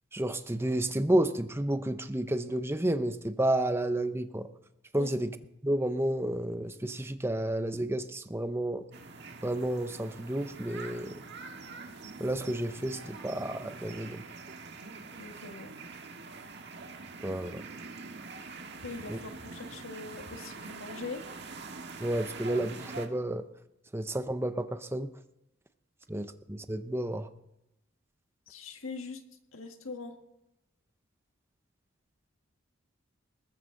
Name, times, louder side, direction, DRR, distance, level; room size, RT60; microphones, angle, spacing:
voice 1, 0.1-4.5 4.9-5.3 5.6-8.9 9.4-11.2 12.2-14.2 17.2-17.6 19.1-19.2 22.0-23.4 23.9-25.1 26.1-27.3, right 1 dB, 10° right, 10 dB, 0.7 m, -31 dB
sound 1, 8.9-23.1, right 4 dB, 55° right, 1.6 m, -45 dB
voice 2, 15.2-15.7 18.8-19.2 19.5-21.2 28.5-29.2 29.5-30.1, left 4 dB, 80° left, 5 dB, 1.6 m, -42 dB
20.5 x 13.0 x 3.8 m, 0.84 s
head